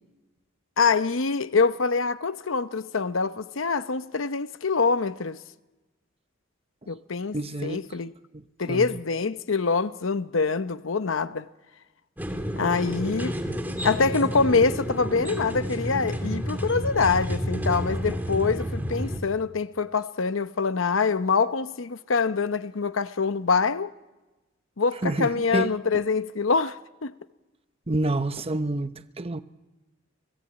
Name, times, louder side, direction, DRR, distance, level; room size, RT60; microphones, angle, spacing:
voice 1, 0.8-5.4 6.9-7.4 7.6-8.1 8.6-11.5 12.6-13.4 13.8-23.9 24.8-27.1, left 4 dB, 80° left, 0.9 m, -25 dB
voice 2, 7.3-7.8 8.3-9.0 24.9-25.8 27.9-29.4, right 2 dB, 30° right, 0.9 m, -28 dB
sound 1, 12.2-19.2, equal, 10° right, 2.8 m, -30 dB
29.0 x 18.0 x 8.9 m
head